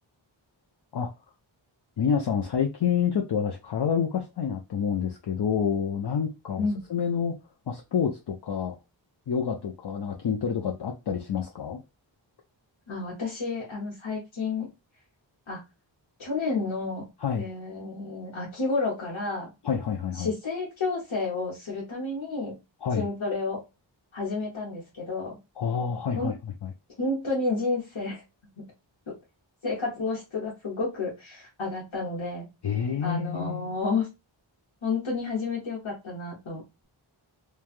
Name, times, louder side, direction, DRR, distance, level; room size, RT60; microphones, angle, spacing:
voice 1, 2.0-7.3 7.7-8.8 9.3-11.8 17.2-17.5 19.6-20.3 22.8-23.0 25.6-26.3 26.6-26.7 32.6-33.7, left 7 dB, 60° left, 0.6 m, -28 dB
voice 2, 12.9-14.7 15.5-15.6 16.2-17.0 17.4-19.5 20.2-22.6 22.9-23.6 24.1-25.4 26.1-26.3 27.0-28.2 28.6-28.7 29.1-29.2 29.6-32.5 33.0-34.1 34.8-36.8, left 3 dB, 80° left, 1.3 m, -30 dB
3.1 x 2.3 x 2.5 m
wide cardioid pair, 80°, 47 cm